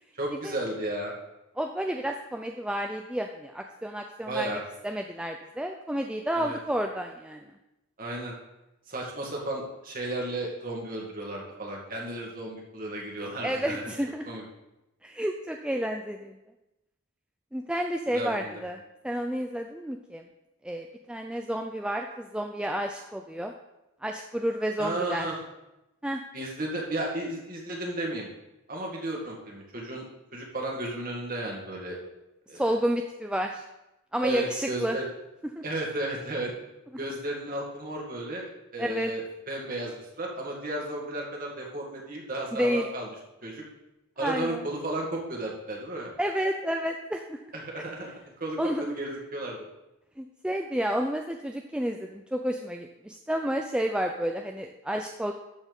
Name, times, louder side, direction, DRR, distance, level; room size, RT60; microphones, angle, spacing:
voice 1, 0.1-1.1 4.3-4.6 6.3-6.6 8.0-8.3 8.9-13.8 14.3-14.4 18.1-18.6 24.8-25.4 26.3-28.3 28.7-30.0 30.3-32.0 32.5-32.6 34.2-35.1 35.6-36.5 37.0-43.1 43.4-43.6 44.2-46.1 47.5-49.7, right 1 dB, 40° right, -2 dB, 2.0 m, -34 dB
voice 2, 1.6-4.6 4.8-7.5 13.4-14.4 15.0-16.3 17.5-20.2 20.6-23.5 24.0-25.3 26.0-26.2 32.5-33.6 34.1-35.0 35.6-35.7 38.8-39.1 42.5-42.9 44.2-44.6 46.2-47.4 47.8-47.9 48.6-49.0 50.2-55.3, equal, 5° right, 3 dB, 0.4 m, -30 dB
13.0 x 4.4 x 5.3 m, 0.94 s
head